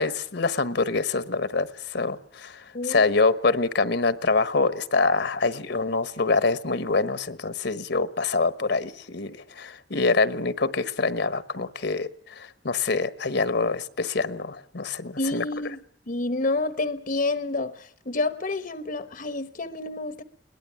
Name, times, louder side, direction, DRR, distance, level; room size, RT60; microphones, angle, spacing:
voice 1, 0.0-15.4, left 3 dB, 65° left, 1.3 m, -25 dB
voice 2, 2.7-3.1 15.2-15.8 16.1-20.2, left 2 dB, 50° left, 1.1 m, -29 dB
22.0 x 19.5 x 8.6 m
head